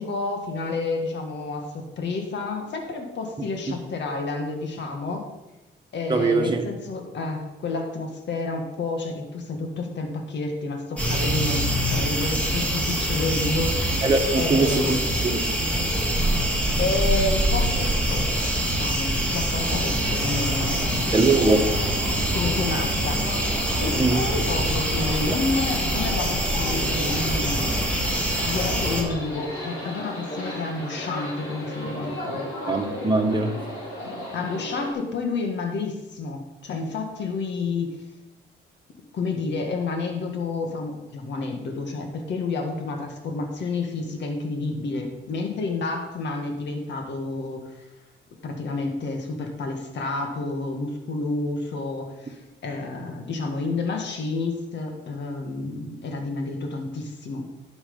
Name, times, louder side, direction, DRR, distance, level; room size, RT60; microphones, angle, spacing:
voice 1, 0.0-5.3 5.9-14.0 14.3-15.0 16.8-18.3 18.6-21.4 22.3-28.0 28.5-32.5 34.3-38.0 39.1-47.8 48.4-57.5, left 3 dB, 65° left, 3 dB, 1.9 m, -30 dB
voice 2, 6.1-6.6 14.0-15.0 15.2-15.4 21.1-21.7 24.0-24.2 32.7-33.6, right 3 dB, 20° right, 3 dB, 1.5 m, -21 dB
sound 1, 11.0-29.0, right 1 dB, 5° left, 2.9 m, -24 dB
sound 2, 19.6-34.9, left 1 dB, 85° left, 4.1 m, -35 dB
11.5 x 6.4 x 5.5 m, 1.0 s
cardioid pair, 90°, 20 cm